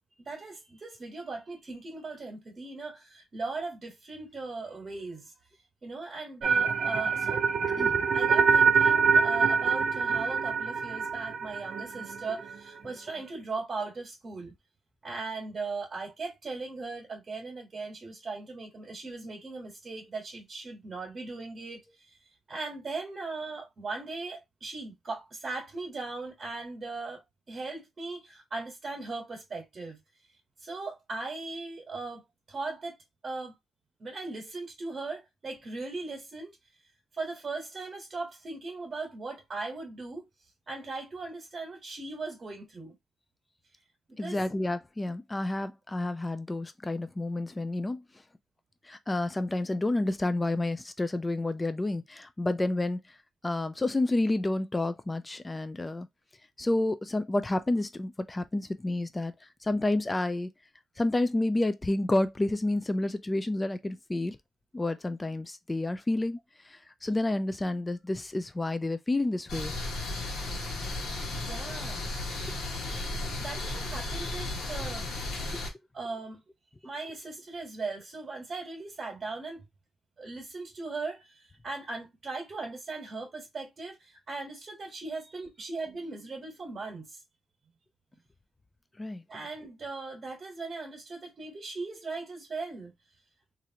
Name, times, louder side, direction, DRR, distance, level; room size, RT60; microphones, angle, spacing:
voice 1, 0.2-5.3 5.8-7.4 8.1-14.5 15.0-22.2 22.5-30.0 30.6-32.9 33.2-33.5 34.0-36.5 37.2-40.2 40.7-42.9 44.2-44.4 71.4-72.0 73.1-75.1 75.4-75.5 75.9-76.4 76.8-79.6 80.2-87.2 89.3-92.9, right 3 dB, 40° right, 1.2 m, -38 dB
sound 1, 6.4-12.5, right 5 dB, 60° right, 0.4 m, -25 dB
voice 2, 44.2-48.0 48.9-53.0 53.4-56.1 56.6-59.3 59.6-60.5 61.0-64.4 64.7-66.4 67.0-69.7 89.0-89.2, left 2 dB, 20° left, 0.4 m, -29 dB
sound 2, 69.5-75.7, left 2 dB, 75° left, 1.1 m, -34 dB
3.1 x 2.5 x 2.7 m
cardioid pair, 100°, 0 cm